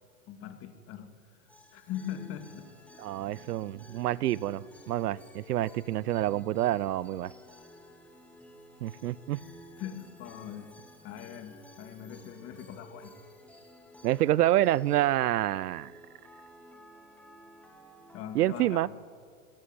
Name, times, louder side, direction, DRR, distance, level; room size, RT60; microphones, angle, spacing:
voice 1, 0.3-1.1 1.7-3.0 9.8-10.7 11.0-13.1 18.1-18.9, left 10 dB, 30° left, 7 dB, 2.3 m, -41 dB
sound 1, 1.5-18.8, left 1 dB, 5° left, 2.5 m, -53 dB
voice 2, 3.0-7.3 8.8-9.4 14.0-15.9 18.3-18.9, right 14 dB, 85° right, 22 dB, 0.8 m, -27 dB
25.5 x 16.5 x 9.8 m, 2.2 s
supercardioid pair, 150°, 45 cm